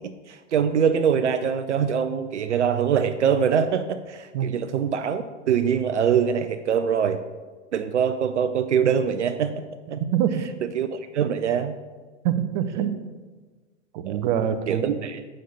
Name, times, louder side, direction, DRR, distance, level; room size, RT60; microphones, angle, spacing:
voice 1, 0.3-7.2 7.7-10.0 10.7-11.7 14.1-14.2 14.7-15.2, right 7 dB, 75° right, 9 dB, 0.6 m, -23 dB
voice 2, 10.0-10.3 12.2-13.0 13.9-15.1, right 9 dB, 40° right, 10 dB, 0.7 m, -25 dB
7.6 x 6.5 x 4.0 m, 1.3 s
figure-of-eight pair, 105°, 36 cm